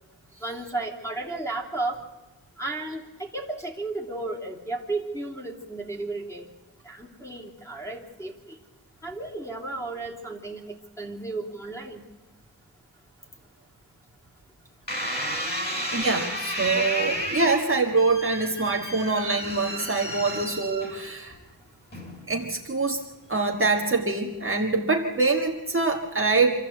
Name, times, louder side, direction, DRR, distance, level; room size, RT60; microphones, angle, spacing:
voice 1, 0.4-2.0 2.6-6.5 6.8-8.3 9.0-10.6 11.0-12.0, right 2 dB, 5° left, 0 dB, 3.1 m, -33 dB
sound 1, 14.9-21.3 21.9-22.4, equal, 25° left, 4.9 m, -32 dB
voice 2, 15.9-21.3 22.3-23.0 23.3-26.5, right 3 dB, 30° right, 0 dB, 1.7 m, -24 dB
25.5 x 14.5 x 8.0 m, 1.1 s
wide cardioid pair, 150°, 39 cm